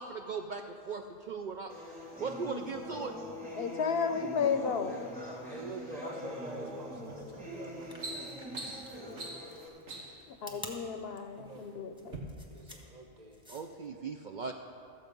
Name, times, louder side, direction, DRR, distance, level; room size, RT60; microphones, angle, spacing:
voice 1, 0.0-1.7 2.2-3.1 13.5-14.5, right 5 dB, 55° right, 4 dB, 0.6 m, -38 dB
sound 1, 1.7-9.7, left 1 dB, 20° right, 2.4 m, -43 dB
voice 2, 3.6-5.0 10.4-12.3, left 6 dB, 65° left, 8 dB, 0.8 m, -33 dB
voice 3, 5.4-8.6 10.5-10.6 11.3-11.7 12.5-13.4, right 1 dB, 40° right, 2 dB, 1.0 m, -46 dB
sound 2, 7.1-7.3 7.7-10.3 11.1-11.6 12.0-12.2, right 2 dB, 85° right, 1.8 m, -43 dB
sound 3, 7.8-13.9, equal, 5° right, 1.2 m, -50 dB
14.0 x 7.6 x 5.3 m, 2.4 s
omnidirectional pair, 1.2 m